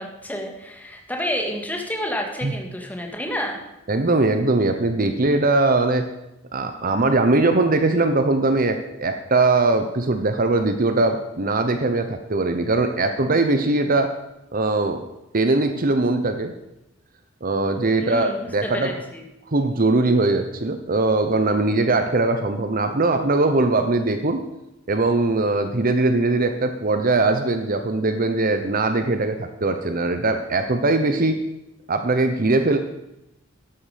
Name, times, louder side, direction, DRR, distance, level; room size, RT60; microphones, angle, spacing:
voice 1, 0.0-3.6 18.0-18.5 18.7-19.2, equal, 10° left, 2 dB, 2.1 m, -29 dB
voice 2, 3.9-6.1 6.5-14.1 14.5-15.0 15.3-16.5 17.4-18.9 19.5-24.5 24.9-31.4 31.9-32.8, right 2 dB, 45° right, 7 dB, 1.0 m, -21 dB
13.0 x 11.5 x 5.2 m, 0.89 s
head